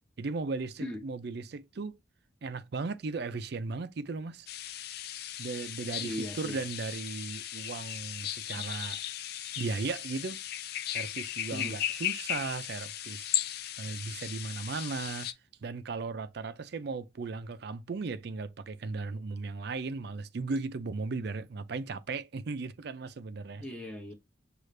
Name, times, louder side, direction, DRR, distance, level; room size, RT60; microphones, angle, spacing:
voice 1, 0.2-2.0 2.4-4.5 5.4-9.0 9.6-10.4 10.8-13.3 13.8-15.3 15.6-23.6, right 4 dB, 55° right, 0.4 m, -36 dB
sound 1, 4.5-15.3, left 12 dB, 50° left, 0.3 m, -36 dB
voice 2, 6.0-6.6 11.5-11.8 23.6-24.1, left 1 dB, 5° left, 0.7 m, -38 dB
6.4 x 2.5 x 3.2 m
head